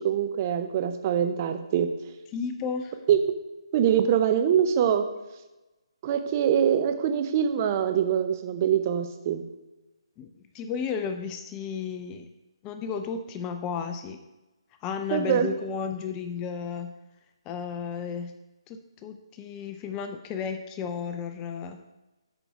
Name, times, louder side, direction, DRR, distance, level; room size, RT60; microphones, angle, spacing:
voice 1, 0.0-1.9 3.1-3.2 3.7-5.1 6.0-9.4 15.1-15.5, right 9 dB, 30° right, 8 dB, 0.6 m, -24 dB
voice 2, 2.3-3.0 10.2-12.3 12.6-14.2 14.8-16.9 17.5-18.3 18.7-21.8, left 6 dB, 20° left, 7 dB, 0.4 m, -33 dB
7.0 x 5.4 x 4.7 m, 1.0 s
figure-of-eight pair, 145°, 3 cm